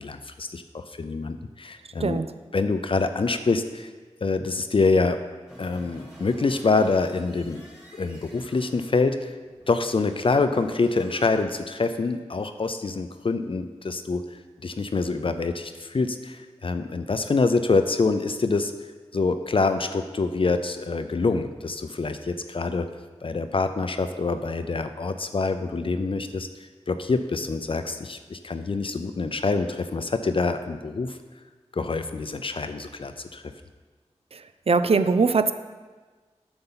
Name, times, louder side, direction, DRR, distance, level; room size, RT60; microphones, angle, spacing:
voice 1, 0.0-2.2 2.5-3.9 4.2-5.2 5.6-7.6 7.9-9.3 9.7-14.2 14.6-18.7 19.1-22.9 23.2-26.5 26.9-31.2 31.7-33.4, left 3 dB, 50° left, 8 dB, 0.5 m, -25 dB
sound 1, 5.5-11.3, equal, 5° right, 2.3 m, -47 dB
voice 2, 34.7-35.5, right 4 dB, 60° right, 11 dB, 0.5 m, -21 dB
7.8 x 6.9 x 5.6 m, 1.4 s
wide cardioid pair, 85°, 12 cm